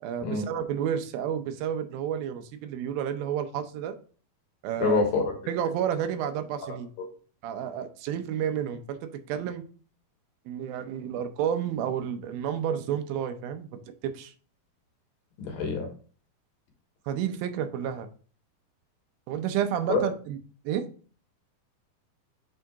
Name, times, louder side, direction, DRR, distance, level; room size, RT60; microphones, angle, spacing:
voice 1, 0.0-4.0 4.6-5.0 5.5-6.9 7.4-9.6 10.5-13.7 14.0-14.3 17.1-18.1 19.3-20.4 20.7-20.8, right 9 dB, 80° right, 8 dB, 2.5 m, -30 dB
voice 2, 4.8-5.3 7.0-7.1 15.4-15.9 19.9-20.0, left 4 dB, 75° left, 3 dB, 2.9 m, -26 dB
8.0 x 3.8 x 3.5 m, 0.40 s
omnidirectional pair, 4.2 m